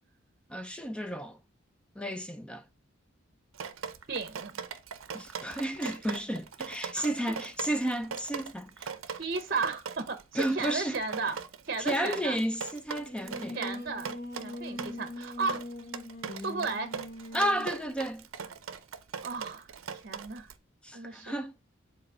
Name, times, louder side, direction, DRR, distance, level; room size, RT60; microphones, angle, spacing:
voice 1, 0.5-1.4 2.0-2.6 5.1-8.9 10.3-11.0 11.8-13.6 17.3-18.3 20.8-21.5, right 1 dB, 5° left, 0.4 m, -32 dB
Drip, 3.5-20.6, right 6 dB, 80° right, 0.6 m, -40 dB
voice 2, 4.1-4.5 6.9-7.2 9.1-11.4 11.7-12.4 13.5-14.1 14.4-15.6 16.4-16.9 19.2-19.7 19.9-20.5 20.9-21.3, right 4 dB, 45° right, 0.7 m, -34 dB
Singing, 13.0-17.8, left 2 dB, 45° left, 1.0 m, -42 dB
5.1 x 4.1 x 6.0 m
head